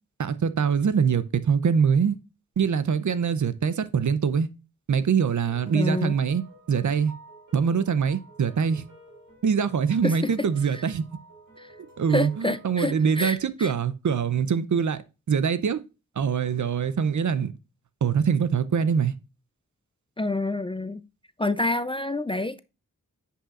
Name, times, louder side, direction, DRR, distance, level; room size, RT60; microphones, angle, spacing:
voice 1, 0.2-2.1 2.6-4.5 4.9-6.4 6.7-7.1 7.5-8.8 9.4-11.0 12.0-15.0 15.3-15.8 16.2-17.5 18.0-19.1, right 6 dB, 60° right, 0.6 m, -23 dB
sound 1, 5.3-13.3, right 2 dB, 75° right, 3.1 m, -51 dB
voice 2, 5.7-6.1 10.0-10.3 11.6-11.7 12.1-13.7 20.2-21.0 21.4-22.6, left 2 dB, 15° left, 0.4 m, -28 dB
9.8 x 5.6 x 2.5 m
cardioid pair, 60°, 34 cm